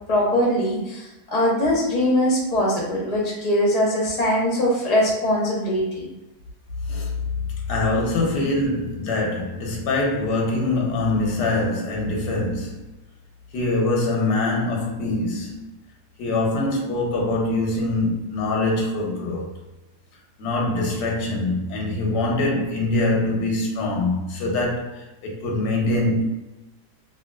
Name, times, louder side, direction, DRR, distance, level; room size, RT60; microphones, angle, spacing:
voice 1, 0.1-6.1, equal, 35° left, 0.7 m, -21 dB
voice 2, 7.7-12.8 13.5-15.7 16.2-19.5 20.4-26.2, left 2 dB, 90° left, 1.3 m, -24 dB
2.9 x 2.9 x 2.2 m
omnidirectional pair, 1.7 m